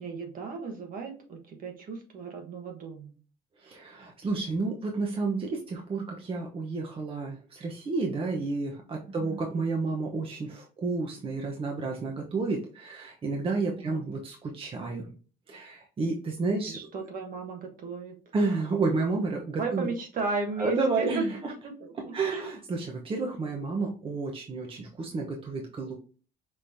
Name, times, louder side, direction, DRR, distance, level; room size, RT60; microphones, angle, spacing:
voice 1, 0.0-3.1 9.1-9.4 13.8-14.0 16.7-18.1 19.6-21.3 21.6-22.5, right 3 dB, 55° right, 3 dB, 1.3 m, -35 dB
voice 2, 3.6-15.1 15.5-16.8 18.3-19.9 20.6-21.3 22.1-26.0, right 3 dB, 30° right, 1 dB, 0.9 m, -31 dB
5.4 x 3.1 x 2.7 m, 0.38 s
cardioid pair, 110°, 17 cm